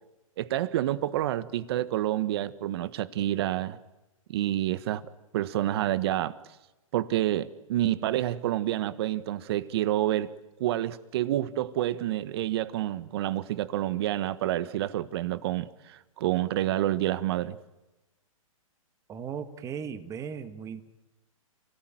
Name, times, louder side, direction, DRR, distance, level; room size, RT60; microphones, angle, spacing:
voice 1, 0.4-3.8 4.3-5.1 5.3-6.4 6.9-10.3 10.6-17.6, right 13 dB, 45° right, 1.4 m, -28 dB
voice 2, 19.1-20.8, right 7 dB, 20° right, 1.9 m, -37 dB
29.5 x 17.5 x 9.2 m
hypercardioid pair, 135°, 18 cm